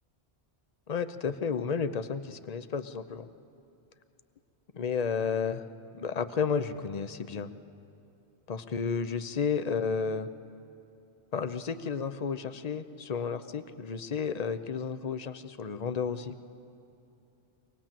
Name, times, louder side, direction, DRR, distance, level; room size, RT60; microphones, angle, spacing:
voice 1, 0.9-3.3 4.7-5.6 5.9-7.5 8.5-10.3 11.3-16.3, left 6 dB, 40° left, 11 dB, 0.7 m, -32 dB
24.5 x 19.0 x 7.5 m, 2.8 s
omnidirectional pair, 1.1 m